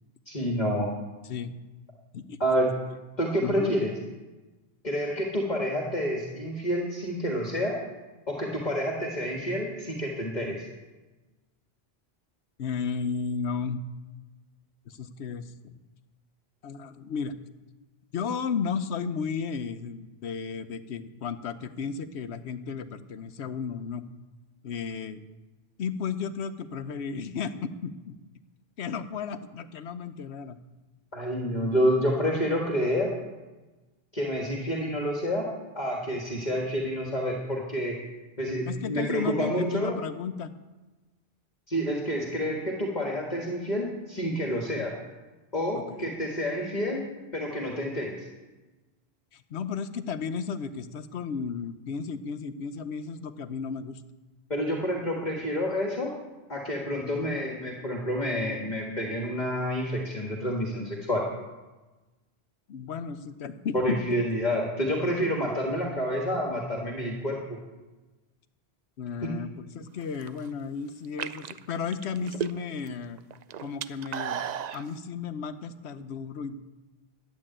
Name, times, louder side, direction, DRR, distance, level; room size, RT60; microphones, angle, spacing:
voice 1, 0.3-0.9 2.4-2.8 3.2-3.9 4.8-7.8 8.3-10.7 31.1-33.1 34.1-35.5 35.7-38.0 38.4-39.9 41.7-44.9 45.5-47.1 47.3-48.3 54.5-56.1 56.5-61.2 63.7-67.6 69.2-69.3, equal, 45° left, -1 dB, 1.8 m, -28 dB
voice 2, 3.4-3.8 12.6-13.8 14.9-15.7 16.6-17.4 18.1-24.0 24.6-25.2 25.8-28.1 28.8-30.6 38.6-40.5 44.7-44.8 45.7-46.1 49.3-54.0 57.1-57.3 62.7-64.0 69.0-73.2 73.6-74.4 74.7-76.6, left 6 dB, 90° left, 11 dB, 1.0 m, -34 dB
sound 1, 70.0-70.5 71.0-72.9 73.2-74.8, right 9 dB, 55° right, 0.5 m, -34 dB
12.0 x 8.3 x 8.8 m, 1.2 s
omnidirectional pair, 1.1 m